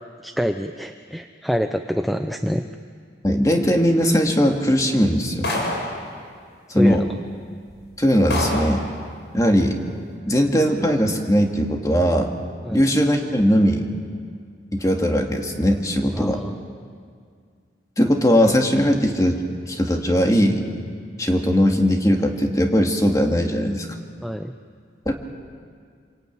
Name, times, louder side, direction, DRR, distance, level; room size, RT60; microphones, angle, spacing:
voice 1, 0.2-2.7 6.7-7.1 12.6-12.8 16.1-16.5 24.2-24.5, equal, ahead, 6 dB, 0.6 m, -26 dB
voice 2, 3.2-5.5 6.7-7.0 8.0-8.8 9.3-9.8 10.3-12.3 12.7-13.9 14.7-16.4 18.0-19.4 19.7-20.6 21.2-23.9 25.1-25.2, equal, 20° left, 2 dB, 2.2 m, -19 dB
sound 1, 5.4-6.0 7.0-7.1 7.7-7.8 8.3-8.8, left 1 dB, 70° left, 5.6 m, -25 dB
27.5 x 22.5 x 9.4 m, 2.1 s
head